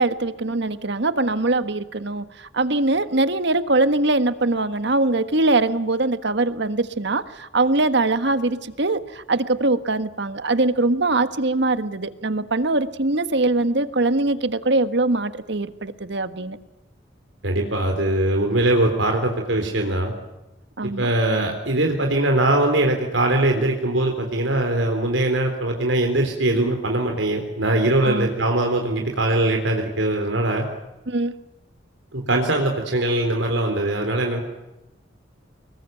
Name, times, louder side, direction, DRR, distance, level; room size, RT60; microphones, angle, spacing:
voice 1, 0.0-16.6 20.8-21.1 28.0-28.3 31.1-31.3, right 2 dB, 65° right, 11 dB, 1.5 m, -22 dB
voice 2, 17.4-20.1 21.0-30.6 32.1-34.4, right 1 dB, 85° right, 3 dB, 3.8 m, -21 dB
25.5 x 22.0 x 9.2 m, 0.98 s
head